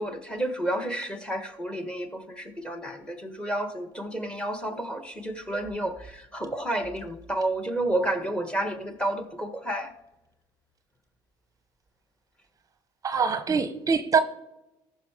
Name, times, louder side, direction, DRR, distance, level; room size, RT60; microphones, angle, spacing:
voice 1, 0.0-9.9, right 1 dB, 10° left, 8 dB, 1.4 m, -31 dB
voice 2, 13.0-14.2, right 5 dB, 30° right, 10 dB, 0.8 m, -24 dB
14.0 x 5.6 x 5.0 m, 0.88 s
supercardioid pair, 100°, 11 cm